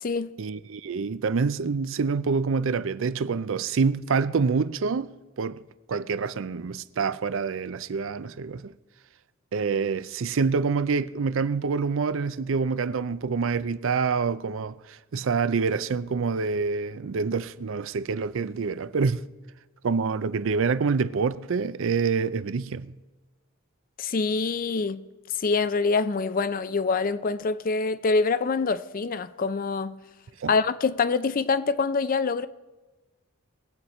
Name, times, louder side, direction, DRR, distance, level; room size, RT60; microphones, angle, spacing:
voice 1, 0.4-5.1 5.4-5.6 5.9-8.7 9.5-14.7 15.1-19.2 19.8-22.9 30.4-30.5, right 5 dB, 65° right, 0.5 m, -26 dB
voice 2, 24.0-25.0 25.3-30.0 30.5-32.5, left 4 dB, 40° left, 0.5 m, -25 dB
21.0 x 8.0 x 4.3 m
head